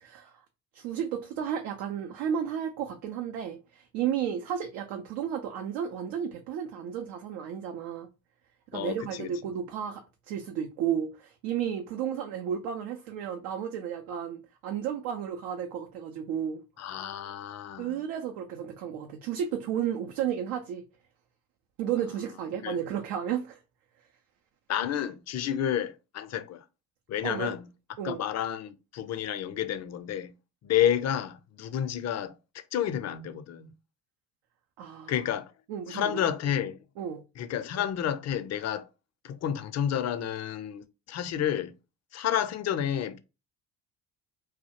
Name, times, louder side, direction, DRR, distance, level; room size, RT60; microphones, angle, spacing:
voice 1, 0.0-0.4 0.7-8.1 8.7-16.6 17.8-20.8 21.8-23.6 27.2-27.6 28.0-28.2 34.8-35.3 35.7-36.2 37.0-37.2, right 9 dB, 75° right, 0.5 m, -33 dB
voice 2, 8.7-9.3 16.8-18.0 22.6-22.8 24.7-26.6 27.1-27.7 28.0-30.3 30.6-33.7 35.1-35.5 35.9-36.8 37.4-38.9 39.2-41.7 42.1-43.2, left 10 dB, 40° left, 0.4 m, -30 dB
2.3 x 2.0 x 2.8 m
hypercardioid pair, 60°, 43 cm